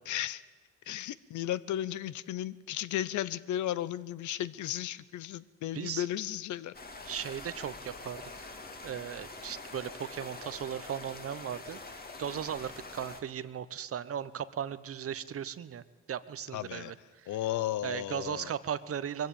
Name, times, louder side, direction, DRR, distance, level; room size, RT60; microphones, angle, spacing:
voice 1, 0.1-0.4 0.9-6.7 16.5-16.9 17.3-18.5, left 12 dB, 75° left, 18 dB, 0.7 m, -34 dB
voice 2, 5.7-6.1 7.0-8.5 8.8-11.8 12.2-17.4 17.8-19.3, right 9 dB, 50° right, 16 dB, 0.9 m, -37 dB
sound 1, 6.7-13.2, left 3 dB, 30° left, 2.4 m, -45 dB
21.5 x 15.5 x 9.0 m, 1.4 s
cardioid pair, 90°, 30 cm